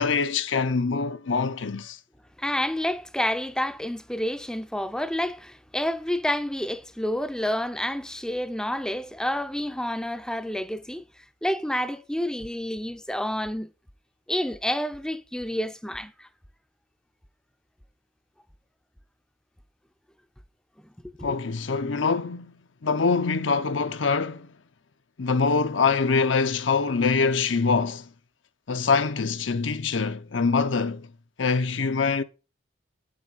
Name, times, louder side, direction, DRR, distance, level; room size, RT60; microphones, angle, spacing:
voice 1, 0.0-2.0 21.2-22.5 22.8-24.5 25.2-28.1 28.7-31.1 31.4-32.2, left 4 dB, 75° left, 0.7 m, -24 dB
voice 2, 2.4-11.1 11.4-13.7 14.3-16.3 21.2-21.4, left 1 dB, 5° left, 0.5 m, -29 dB
9.1 x 7.6 x 4.0 m
head